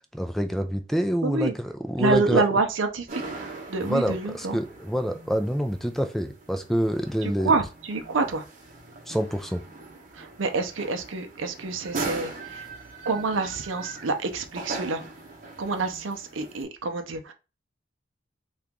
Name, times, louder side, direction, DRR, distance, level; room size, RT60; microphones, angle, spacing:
voice 1, 0.1-2.5 3.9-7.5 9.1-9.6, equal, ahead, 0.3 m, -26 dB
voice 2, 1.2-1.5 2.0-4.6 7.2-8.4 10.1-12.7 13.1-15.0 15.6-17.3, right 3 dB, 85° right, 0.6 m, -27 dB
sound 1, 3.1-16.6, right 3 dB, 40° right, 0.9 m, -40 dB
2.9 x 2.5 x 3.5 m
head